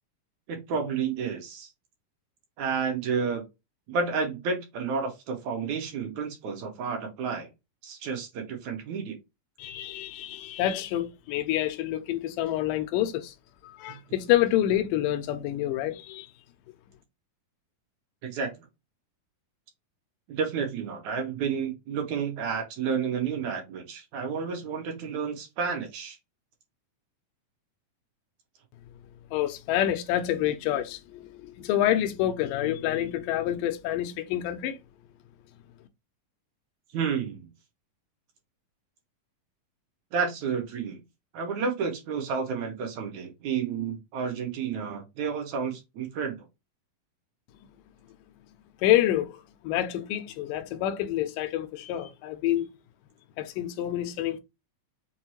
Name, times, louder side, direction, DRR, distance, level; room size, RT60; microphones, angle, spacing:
voice 1, 0.5-1.7 2.6-3.4 3.9-7.5 7.8-9.2 18.2-18.7 20.3-26.2 36.9-37.5 40.1-41.0 41.3-46.4, right 6 dB, 65° right, 2.2 m, -31 dB
voice 2, 9.6-13.3 13.8-16.3 29.3-34.8 48.8-52.7 53.4-54.4, left 12 dB, 80° left, 2.1 m, -27 dB
6.3 x 2.2 x 2.8 m
omnidirectional pair, 4.1 m